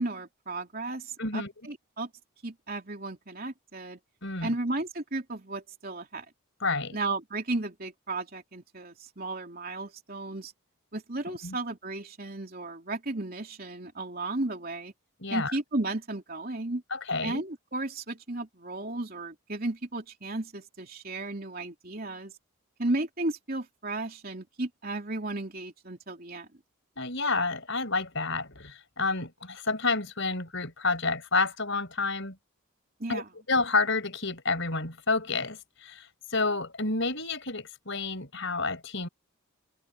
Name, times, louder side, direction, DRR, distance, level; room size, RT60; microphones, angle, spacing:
voice 1, 0.0-2.1 2.4-4.0 4.4-6.2 6.9-10.5 10.9-14.9 15.3-16.8 17.2-22.3 22.8-26.5 33.0-33.2, right 2 dB, 45° right, 3.2 m, -34 dB
voice 2, 1.2-1.5 4.2-4.5 6.6-7.0 11.3-11.6 15.2-15.5 16.9-17.4 27.0-32.4 33.1-39.1, left 3 dB, 60° left, 6.1 m, -30 dB
head